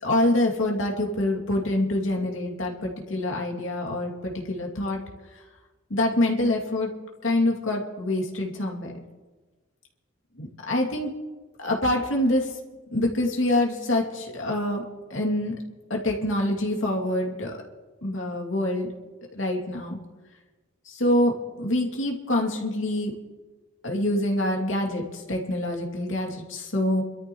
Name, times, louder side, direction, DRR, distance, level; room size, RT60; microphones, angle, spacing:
voice 1, 0.0-5.0 5.9-6.9 7.2-8.9 10.4-11.1 11.6-12.5 12.9-14.8 15.1-15.5 15.9-17.6 18.0-18.9 19.3-20.0 20.9-23.1 23.8-27.0, left 1 dB, 70° left, 0 dB, 2.7 m, -25 dB
28.0 x 13.0 x 3.2 m, 1.3 s
head